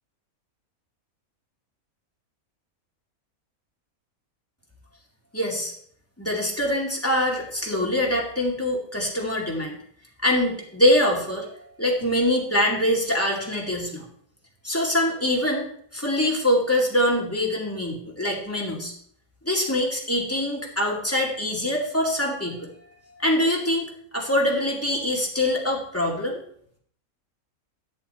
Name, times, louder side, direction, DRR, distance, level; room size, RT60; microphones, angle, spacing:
voice 1, 5.3-5.7 6.2-9.8 10.2-11.5 11.8-14.0 14.6-18.9 19.4-22.7 23.1-23.9 24.1-26.4, left 1 dB, 10° left, -2 dB, 2.4 m, -24 dB
11.0 x 6.9 x 4.4 m, 0.62 s
omnidirectional pair, 1.5 m